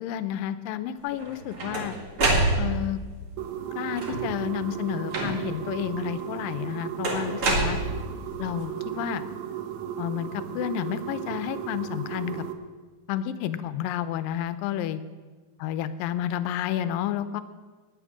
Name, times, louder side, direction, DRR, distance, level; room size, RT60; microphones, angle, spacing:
voice 1, 0.0-2.0 2.6-3.0 3.8-7.8 8.4-9.2 10.0-12.4 13.1-15.0 15.6-17.4, left 10 dB, 80° left, 12 dB, 2.2 m, -30 dB
sound 1, 1.2-3.0 3.9-4.4 5.1-5.7 7.0-8.3, right 2 dB, 40° right, 2.4 m, -26 dB
sound 2, 3.4-12.5, right 10 dB, 85° right, 1.6 m, -35 dB
12.0 x 10.0 x 7.3 m, 1.4 s
omnidirectional pair, 4.3 m